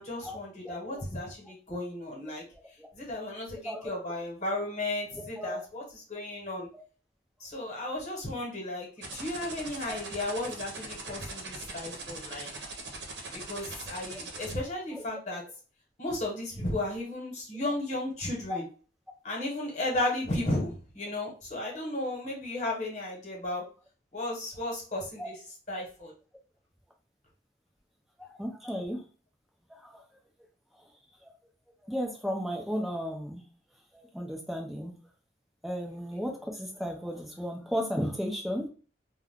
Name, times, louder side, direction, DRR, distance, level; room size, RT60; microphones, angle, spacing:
voice 1, 0.0-2.4 2.9-5.8 6.1-6.7 7.4-12.5 13.3-15.4 16.0-18.6 19.2-23.6 24.1-25.3 25.7-26.1, left 1 dB, 45° left, -2 dB, 1.2 m, -34 dB
voice 2, 0.6-1.0 3.6-4.0 5.2-5.6 9.9-10.0 13.7-13.8 14.9-15.0 18.5-18.6 25.2-25.3 28.2-29.0 29.8-30.0 31.2-31.3 31.9-33.4 33.9-34.9 35.6-38.7, equal, ahead, 0 dB, 0.6 m, -34 dB
sound 1, 9.0-14.5, right 3 dB, 75° right, 0.8 m, -41 dB
2.4 x 2.3 x 3.5 m, 0.37 s
head